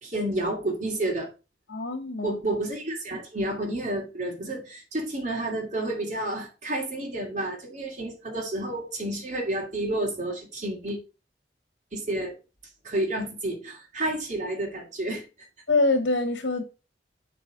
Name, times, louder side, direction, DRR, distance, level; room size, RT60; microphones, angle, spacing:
voice 1, 0.0-1.3 2.2-11.0 11.9-12.3 12.8-15.2, right 1 dB, 40° right, 2.5 m, -30 dB
voice 2, 1.7-2.4 15.7-16.6, left 3 dB, 80° left, 1.3 m, -25 dB
8.3 x 4.2 x 5.0 m
head